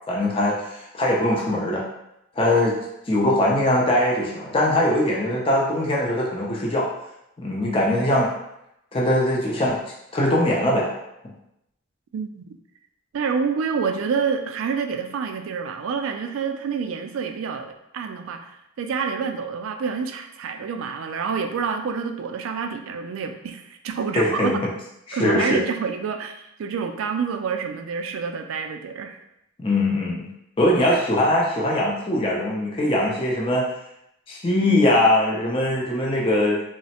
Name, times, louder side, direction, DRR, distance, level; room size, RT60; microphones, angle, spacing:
voice 1, 0.1-1.8 2.4-2.8 3.1-6.9 7.4-8.3 8.9-9.8 10.1-10.9 24.2-24.6 25.1-25.6 29.6-30.3 30.6-33.6 34.3-36.6, left 1 dB, 25° left, -3 dB, 0.4 m, -21 dB
voice 2, 12.1-12.5 13.1-24.6 25.1-29.2, right 6 dB, 80° right, 6 dB, 0.3 m, -28 dB
3.0 x 2.0 x 2.8 m, 0.83 s
head